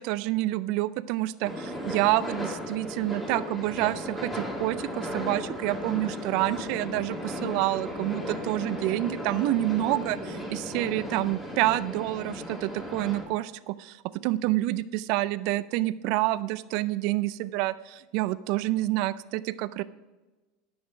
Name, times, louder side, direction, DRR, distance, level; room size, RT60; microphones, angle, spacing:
voice 1, 0.0-14.0 14.2-19.8, right 16 dB, 60° right, 17 dB, 0.4 m, -28 dB
sound 1, 1.4-13.2, left 1 dB, 10° left, 2.6 m, -36 dB
10.0 x 6.3 x 4.9 m, 1.2 s
hypercardioid pair, 85°, 0 cm